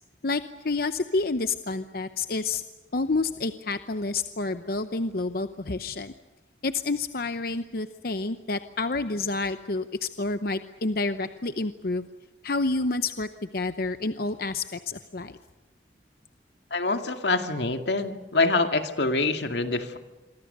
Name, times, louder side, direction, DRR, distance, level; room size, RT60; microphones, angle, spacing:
voice 1, 0.2-2.6 2.9-6.1 6.6-12.1 12.4-13.3 13.5-15.4, left 3 dB, 55° left, 10 dB, 0.8 m, -29 dB
voice 2, 16.7-20.0, left 3 dB, 75° left, 6 dB, 2.2 m, -25 dB
27.5 x 24.0 x 6.7 m, 1.1 s
head